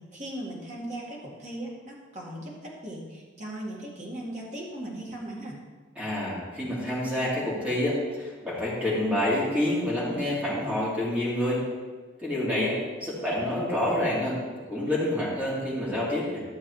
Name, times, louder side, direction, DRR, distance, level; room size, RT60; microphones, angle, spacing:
voice 1, 0.0-5.6, right 1 dB, 40° right, -3 dB, 1.9 m, -38 dB
voice 2, 6.0-11.6 12.2-14.4 14.7-16.4, left 1 dB, 5° right, -7 dB, 2.6 m, -28 dB
13.0 x 7.1 x 3.3 m, 1.4 s
head